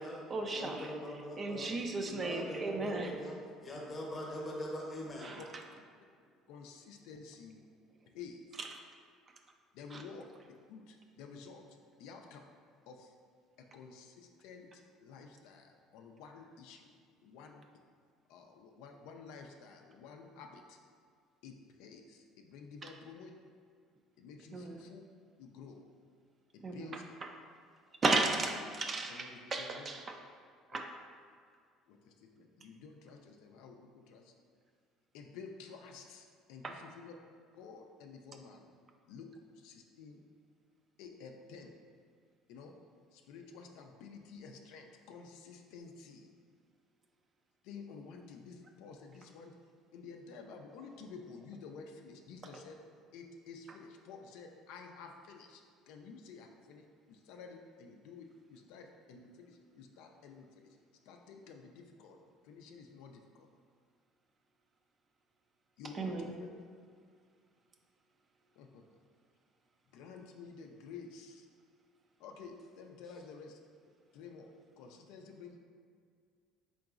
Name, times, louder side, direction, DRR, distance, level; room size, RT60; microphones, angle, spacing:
voice 1, 0.0-0.9 1.4-3.2 5.2-5.4 8.6-8.7 9.9-10.0 22.8-22.9 24.5-24.8 26.6-26.9 28.0-30.2 30.7-30.9 36.6-36.8 65.9-66.3, right 3 dB, 35° right, 4 dB, 0.3 m, -35 dB
voice 2, 0.5-1.7 2.0-3.3 3.6-5.4, equal, 30° left, -2 dB, 0.8 m, -42 dB
voice 3, 6.5-7.6 8.1-8.4 9.7-11.6 12.0-12.5 12.9-13.1 13.6-16.9 17.2-17.6 18.3-20.8 21.4-23.3 24.1-25.0 25.4-25.9 26.5-27.0 29.1-29.9 30.7-30.9 31.9-34.3 35.1-37.1 37.5-38.7 39.1-39.3 39.6-40.2 41.0-41.7 42.5-42.7 43.1-46.3 47.6-49.6 49.9-52.8 53.1-60.8 61.1-62.2 62.4-63.5 65.8-66.5 68.6-68.8 69.9-71.5 72.2-73.6 74.1-74.5 74.8-75.6, left 5 dB, 80° left, 3 dB, 0.3 m, -51 dB
3.8 x 3.7 x 2.4 m, 2.1 s
supercardioid pair, 105°, 0 cm